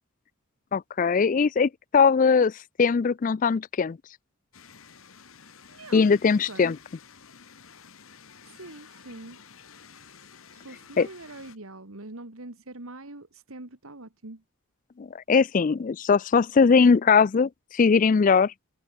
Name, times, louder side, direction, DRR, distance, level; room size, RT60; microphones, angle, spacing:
voice 1, 0.7-2.5 2.8-4.0 5.9-6.8 11.0-11.1 15.0-18.5, left 5 dB, 35° left, 0.3 m, -20 dB
sound 1, 4.5-11.6, left 6 dB, 65° left, 1.6 m, -51 dB
voice 2, 5.7-6.8 8.4-9.4 10.5-14.4, right 2 dB, 70° right, 2.2 m, -44 dB
head